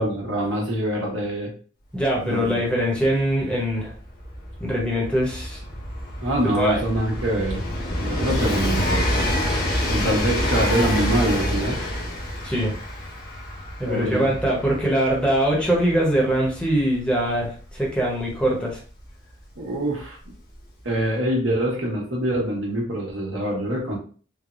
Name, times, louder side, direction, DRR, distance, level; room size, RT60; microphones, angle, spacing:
voice 1, 0.0-1.5 2.2-2.6 6.2-7.7 8.0-9.3 9.9-11.8 13.8-14.3 19.6-20.2 20.8-24.0, right 1 dB, 90° right, -2 dB, 1.0 m, -25 dB
voice 2, 1.9-3.9 4.6-5.6 6.6-6.8 12.4-12.7 13.8-18.8, right 1 dB, 5° left, -4 dB, 0.8 m, -22 dB
Train, 2.1-2.2 2.4-19.0 20.0-20.1, left 1 dB, 50° left, 0.7 m, -27 dB
3.2 x 2.0 x 2.5 m, 0.41 s
head